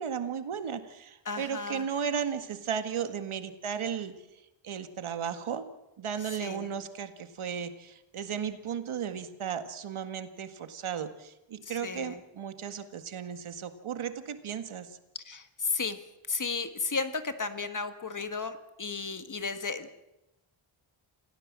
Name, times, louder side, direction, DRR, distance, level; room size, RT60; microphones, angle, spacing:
voice 1, 0.0-4.2 4.6-5.7 6.0-15.0, right 7 dB, 80° right, 9 dB, 1.9 m, -35 dB
voice 2, 1.3-1.9 6.4-6.7 11.6-12.2 15.3-16.0 16.3-19.9, left 4 dB, 40° left, 9 dB, 1.8 m, -34 dB
28.0 x 16.5 x 7.5 m, 0.93 s
wide cardioid pair, 115°, 48 cm